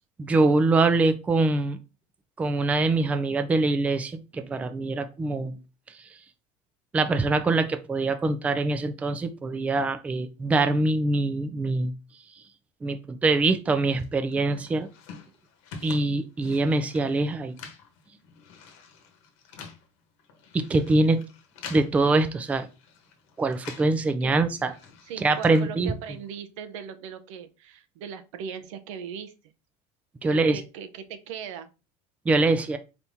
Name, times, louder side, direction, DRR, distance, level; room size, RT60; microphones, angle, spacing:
voice 1, 0.2-1.8 2.4-5.6 5.9-6.1 6.9-11.9 12.8-14.9 15.8-17.5 20.5-21.2 21.7-22.7 23.4-24.7 25.2-25.9 30.2-30.6 32.3-32.8, right 3 dB, 10° right, 9 dB, 0.3 m, -24 dB
sound 1, 14.0-24.0 24.3-26.3, left 5 dB, 75° left, 1.1 m, -47 dB
voice 2, 25.1-29.5 30.3-31.7, right 7 dB, 90° right, 9 dB, 0.7 m, -39 dB
4.3 x 3.5 x 2.7 m, 0.30 s
cardioid pair, 150°, 16 cm